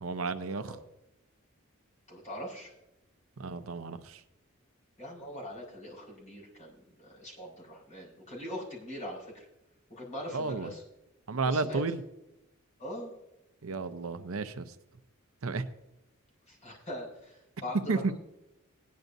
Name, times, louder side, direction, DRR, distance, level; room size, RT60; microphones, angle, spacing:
voice 1, 0.0-0.8 3.4-4.2 10.3-10.7 11.3-12.0 13.6-14.7 15.4-15.7 17.9-18.1, right 3 dB, 70° right, 10 dB, 0.7 m, -32 dB
voice 2, 2.1-2.7 5.0-9.3 9.9-10.8 11.4-11.8 12.8-13.1 16.5-18.1, equal, 35° left, -5 dB, 4.8 m, -42 dB
18.5 x 10.5 x 2.7 m, 0.90 s
head